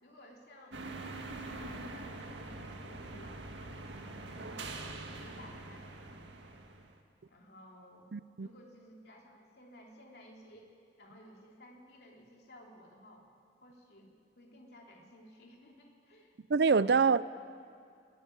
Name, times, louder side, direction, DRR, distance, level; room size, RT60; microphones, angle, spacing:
voice 1, 0.0-0.8 1.2-6.6 7.3-10.7 11.0-13.3 13.6-16.3, equal, 60° left, 3.3 m, -56 dB
sound 1, 0.7-7.0, right 2 dB, 85° right, 1.8 m, -44 dB
voice 2, 8.1-8.5 16.5-17.2, right 5 dB, 65° right, 0.5 m, -25 dB
22.0 x 12.5 x 9.9 m
head